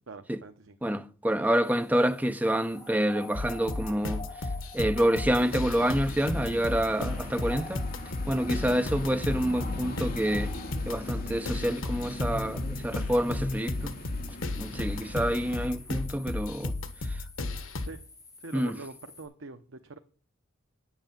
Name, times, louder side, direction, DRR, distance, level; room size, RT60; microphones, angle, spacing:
voice 1, 0.1-0.8 17.8-18.0 18.4-20.0, right 3 dB, 70° right, 0.9 m, -44 dB
voice 2, 0.8-4.3 4.7-7.9 8.3-10.5 10.9-13.9 14.5-16.7 17.0-17.2 18.5-18.8, equal, 10° right, 0.6 m, -27 dB
sound 1, 1.6-19.3, left 3 dB, 15° left, 6.5 m, -50 dB
sound 2, 3.3-17.9, left 2 dB, 80° left, 1.4 m, -34 dB
sound 3, 5.2-15.7, left 1 dB, 45° left, 2.2 m, -40 dB
10.0 x 7.6 x 7.3 m
head